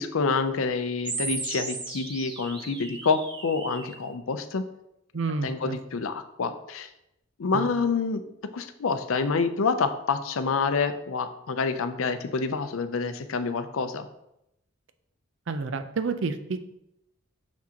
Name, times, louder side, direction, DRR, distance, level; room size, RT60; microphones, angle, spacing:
voice 1, 0.0-4.6 5.4-6.9 7.4-8.2 8.5-14.1, left 4 dB, 85° left, 9 dB, 0.5 m, -27 dB
sound 1, 1.0-4.0, right 3 dB, 25° right, 0.9 m, -36 dB
voice 2, 5.1-5.8 7.5-7.7 15.5-16.6, right 4 dB, 65° right, 9 dB, 0.5 m, -29 dB
6.1 x 5.9 x 2.9 m, 0.83 s
head